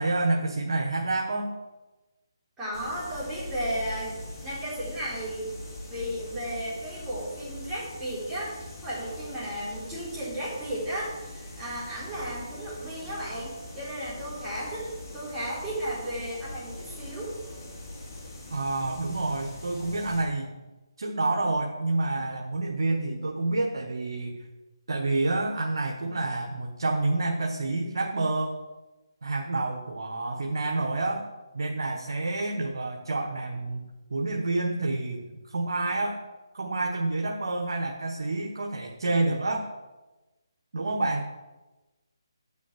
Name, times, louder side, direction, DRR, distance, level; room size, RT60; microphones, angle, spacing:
voice 1, 0.0-1.5 18.5-20.5 21.0-24.4 24.9-28.5 29.2-31.3 31.5-33.8 34.1-36.2 36.5-39.7 40.7-41.3, right 2 dB, 75° right, 2 dB, 1.3 m, -28 dB
voice 2, 2.6-4.2 4.4-5.5 5.9-17.3, right 1 dB, 10° right, -9 dB, 3.9 m, -34 dB
sound 1, 2.7-20.2, left 2 dB, 40° left, 3.6 m, -42 dB
8.8 x 6.1 x 7.4 m, 1.1 s
hypercardioid pair, 160°, 2 cm